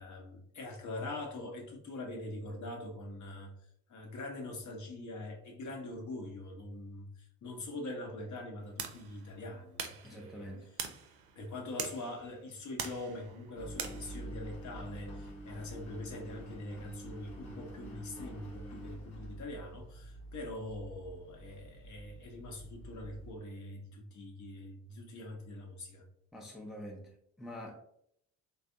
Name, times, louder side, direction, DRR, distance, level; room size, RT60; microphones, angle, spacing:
voice 1, 0.0-3.5 3.9-10.5 11.4-26.0, left 2 dB, 40° left, 3 dB, 0.8 m, -43 dB
sound 1, 8.6-14.2, right 7 dB, 80° right, 0.5 m, -44 dB
voice 2, 10.0-10.7 26.3-27.8, equal, ahead, 0 dB, 0.5 m, -46 dB
Engine, 13.5-23.3, right 1 dB, 80° left, 0.7 m, -47 dB
3.2 x 2.0 x 2.5 m, 0.70 s
hypercardioid pair, 50°, 44 cm